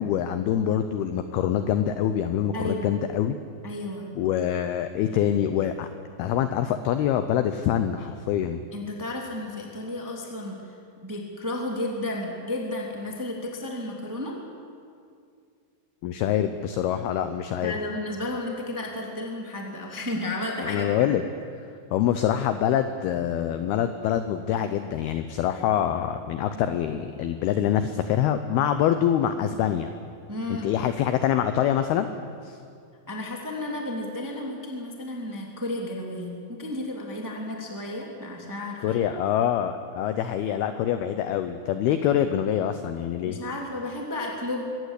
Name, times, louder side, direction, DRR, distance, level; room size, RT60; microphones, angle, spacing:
voice 1, 0.0-3.4 4.2-5.9 6.2-8.6 16.0-17.8 20.6-21.2 21.9-29.9 30.5-32.1 32.4-32.6 38.8-43.4, left 10 dB, 80° left, 9 dB, 2.3 m, -25 dB
voice 2, 2.5-3.0 3.6-4.0 8.7-10.6 11.0-14.4 17.6-21.1 30.3-30.7 33.1-39.0 43.2-44.6, left 1 dB, 5° right, 0 dB, 1.4 m, -32 dB
23.5 x 18.0 x 8.3 m, 2.3 s
omnidirectional pair, 5.4 m